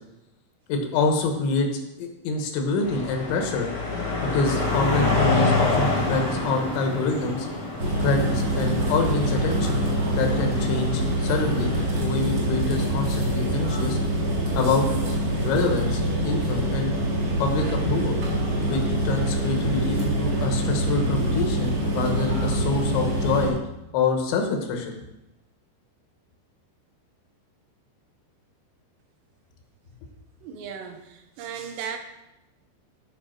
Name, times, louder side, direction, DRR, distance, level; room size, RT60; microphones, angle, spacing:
voice 1, 0.7-1.7 2.0-3.7 4.3-7.5 8.0-9.9 10.2-14.0 14.6-14.9 15.4-16.9 17.4-18.2 18.7-23.6 23.9-25.0, left 3 dB, 80° left, 4 dB, 3.5 m, -26 dB
sound 1, 2.8-11.9, left 3 dB, 40° left, 1.5 m, -28 dB
sound 2, 4.6-9.5, right 2 dB, 60° right, 4.4 m, -39 dB
sound 3, 7.8-23.5, right 1 dB, 45° right, 2.4 m, -25 dB
voice 2, 30.4-32.0, right 7 dB, 80° right, 5 dB, 2.9 m, -36 dB
13.0 x 5.6 x 4.4 m, 0.94 s
omnidirectional pair, 5.2 m